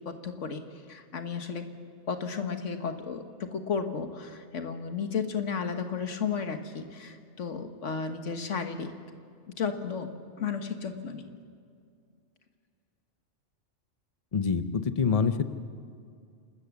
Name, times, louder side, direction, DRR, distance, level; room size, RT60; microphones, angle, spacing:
voice 1, 0.0-1.7 2.1-8.9 9.6-11.3, left 6 dB, 90° left, 7 dB, 1.7 m, -33 dB
voice 2, 14.3-15.4, left 5 dB, 35° left, 10 dB, 0.8 m, -26 dB
28.5 x 13.5 x 7.1 m, 2.3 s
omnidirectional pair, 1.2 m